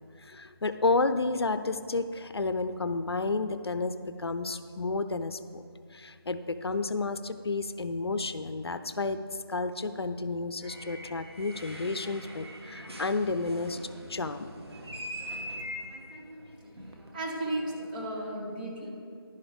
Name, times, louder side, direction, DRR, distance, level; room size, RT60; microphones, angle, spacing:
voice 1, 0.2-5.6 5.9-9.2 9.5-13.8 14.1-14.5, left 3 dB, 75° left, 11 dB, 0.6 m, -31 dB
sound 1, 10.6-18.3, equal, 85° right, 1.8 m, -43 dB
voice 2, 17.1-18.9, right 1 dB, 20° right, -2 dB, 1.2 m, -34 dB
11.0 x 10.5 x 3.4 m, 2.3 s
figure-of-eight pair, 165°, 13 cm